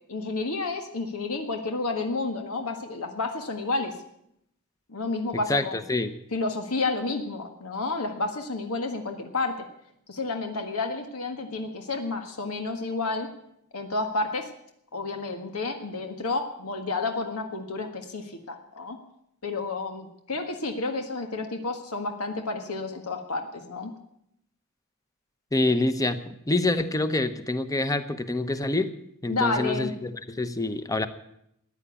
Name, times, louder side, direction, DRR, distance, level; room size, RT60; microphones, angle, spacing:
voice 1, 0.1-3.9 4.9-5.8 6.3-9.6 10.1-13.3 13.7-14.5 14.9-19.0 19.4-23.9 29.3-29.9, left 3 dB, 90° left, 4 dB, 1.6 m, -30 dB
voice 2, 5.5-6.1 25.5-26.2 26.5-28.9 29.2-31.1, left 2 dB, 15° left, 10 dB, 0.9 m, -26 dB
14.5 x 10.0 x 8.3 m, 0.76 s
head